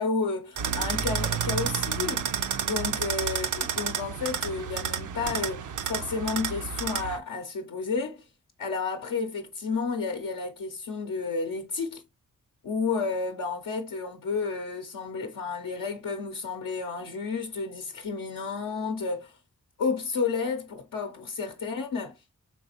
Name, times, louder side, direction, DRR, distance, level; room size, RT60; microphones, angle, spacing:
voice 1, 0.0-2.3 2.6-8.2 8.6-12.0 12.6-19.4 19.8-22.1, left 4 dB, 90° left, 0.6 m, -31 dB
sound 1, 0.6-7.2, right 7 dB, 70° right, 0.5 m, -30 dB
4.3 x 3.2 x 2.8 m
cardioid pair, 45°, 32 cm